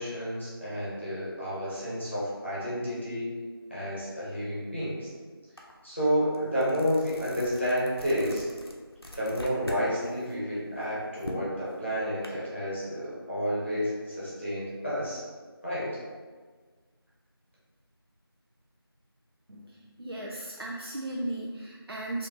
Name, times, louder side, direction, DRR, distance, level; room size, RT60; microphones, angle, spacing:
voice 1, 0.0-3.3 3.7-5.1 5.8-8.5 9.1-15.2 15.6-16.0, equal, 30° left, -9 dB, 0.9 m, -30 dB
sound 1, 5.6-5.7 6.1-9.9 10.2-12.3, left 1 dB, 70° left, 0.7 m, -43 dB
voice 2, 19.5-22.3, right 1 dB, 70° right, -3 dB, 0.5 m, -36 dB
4.3 x 2.6 x 2.8 m, 1.5 s
figure-of-eight pair, 180°, 13 cm